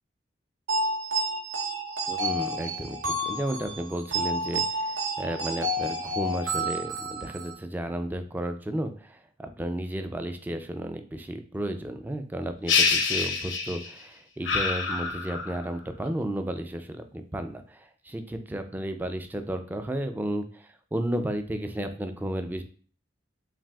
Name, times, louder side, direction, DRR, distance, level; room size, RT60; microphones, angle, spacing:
sound 1, 0.7-7.5, right 1 dB, 70° right, 0.8 m, -30 dB
voice 1, 2.1-22.6, right 1 dB, 10° right, 7 dB, 0.3 m, -33 dB
sound 2, 12.7-14.0 14.5-15.7, left 5 dB, 85° left, 0.6 m, -26 dB
5.9 x 2.4 x 2.3 m, 0.43 s
head